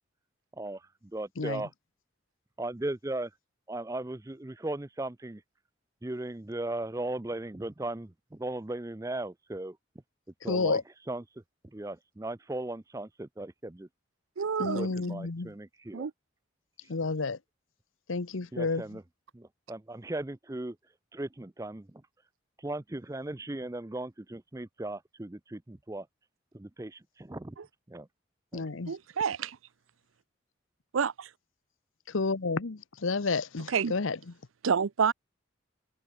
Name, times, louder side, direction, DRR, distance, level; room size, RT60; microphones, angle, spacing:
voice 1, 0.5-1.7 2.6-3.3 3.7-5.4 6.0-9.8 10.4-10.8 11.1-11.2 11.7-13.9 14.7-16.1 18.5-19.0 19.3-20.8 21.1-22.0 22.6-26.1 26.5-27.6 27.9-28.1 28.5-28.6, right 2 dB, 15° right, 0.5 m, -37 dB
voice 2, 1.4-1.7 10.4-10.8 14.6-15.5 16.9-17.4 18.1-19.0 28.5-28.9 32.1-34.3, left 4 dB, 85° left, 0.9 m, -31 dB
voice 3, 14.4-14.9 15.9-16.1 28.9-29.6 30.9-31.3 33.7-33.9 34.6-35.1, right 6 dB, 90° right, 0.6 m, -28 dB
open air
head